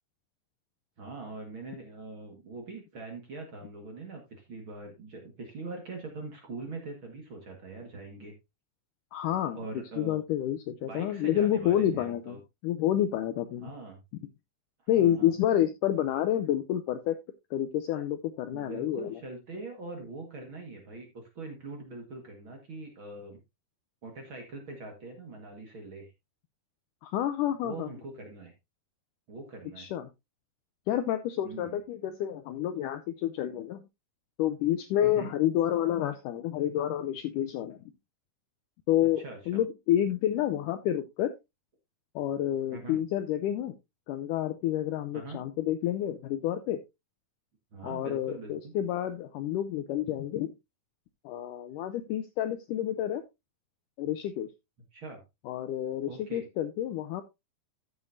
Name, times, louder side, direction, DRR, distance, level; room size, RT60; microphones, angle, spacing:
voice 1, 1.0-8.3 9.5-10.2 10.8-12.4 13.6-14.0 14.8-15.3 18.5-23.4 24.0-26.1 27.6-28.5 29.3-29.9 31.4-31.8 35.0-35.3 39.2-39.4 42.7-43.0 45.1-45.4 47.7-48.7 54.9-55.2 56.1-56.5, right 3 dB, 45° right, 2 dB, 1.8 m, -42 dB
voice 2, 9.1-9.6 10.0-12.4 12.6-13.7 14.9-17.2 17.5-19.2 27.0-27.9 29.8-30.1 30.9-33.8 34.4-37.8 38.9-41.3 42.2-43.8 44.1-46.8 47.8-50.5 51.3-53.2 54.0-54.5 55.5-57.2, left 11 dB, 90° left, 10 dB, 1.8 m, -29 dB
13.5 x 7.0 x 2.6 m, 0.22 s
omnidirectional pair, 4.4 m